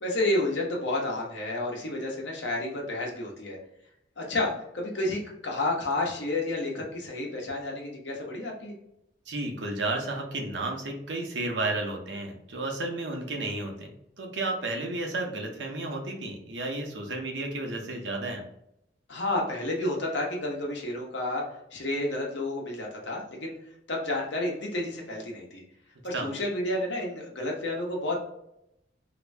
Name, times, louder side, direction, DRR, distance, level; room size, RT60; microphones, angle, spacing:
voice 1, 0.0-3.6 4.2-8.7 19.1-21.4 21.7-23.5 23.9-25.6 26.0-28.2, left 2 dB, 80° left, -1 dB, 1.0 m, -30 dB
voice 2, 9.3-18.4 26.1-26.3, right 2 dB, 80° right, 2 dB, 0.8 m, -32 dB
2.9 x 2.7 x 3.3 m, 0.79 s
head